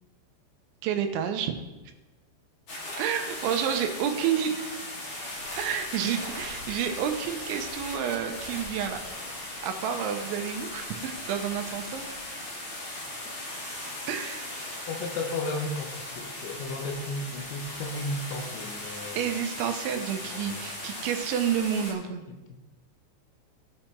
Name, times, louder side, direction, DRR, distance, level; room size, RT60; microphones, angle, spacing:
voice 1, 0.8-1.5 3.0-4.7 5.6-9.0 9.6-12.2 14.1-14.5 19.2-22.2, right 8 dB, 85° right, 5 dB, 3.1 m, -29 dB
sound 1, 2.7-21.9, left 1 dB, 50° left, 1.5 m, -38 dB
voice 2, 14.9-19.2 20.2-20.6 22.3-22.6, left 2 dB, 80° left, 5 dB, 3.1 m, -34 dB
17.5 x 5.9 x 3.4 m, 1.1 s
omnidirectional pair, 5.4 m